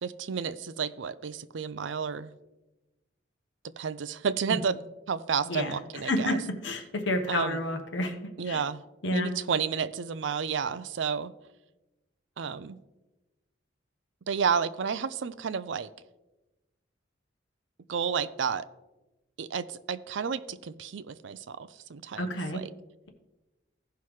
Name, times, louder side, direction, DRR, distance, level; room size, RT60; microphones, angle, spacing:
voice 1, 0.0-2.3 3.8-4.8 5.1-6.4 7.3-7.6 8.4-8.8 9.1-11.3 12.4-12.8 14.3-15.9 17.9-18.7 19.4-22.7, right 6 dB, 70° right, 14 dB, 0.5 m, -31 dB
voice 2, 6.1-8.1 8.5-8.6 9.0-9.3 22.2-22.6, left 1 dB, 70° left, 4 dB, 1.1 m, -29 dB
15.5 x 5.7 x 3.2 m, 1.1 s
head